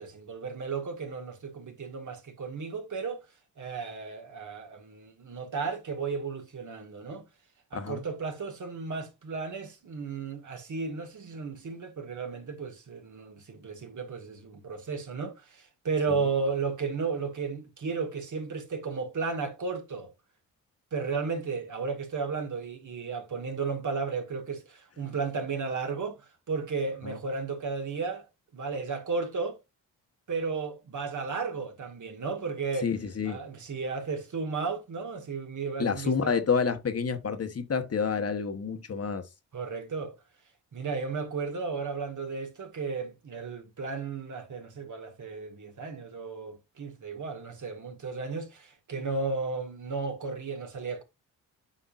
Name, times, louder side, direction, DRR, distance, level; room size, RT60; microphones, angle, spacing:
voice 1, 0.0-3.2 3.6-7.3 7.7-20.1 20.9-28.3 28.5-29.6 30.3-32.9 33.3-36.3 39.5-40.2 40.7-51.0, right 4 dB, 55° right, 1.8 m, -34 dB
voice 2, 7.7-8.0 16.1-16.2 27.0-27.2 32.8-33.4 35.8-39.3, left 6 dB, 40° left, 1.2 m, -29 dB
8.3 x 5.1 x 2.5 m
supercardioid pair, 60°, 36 cm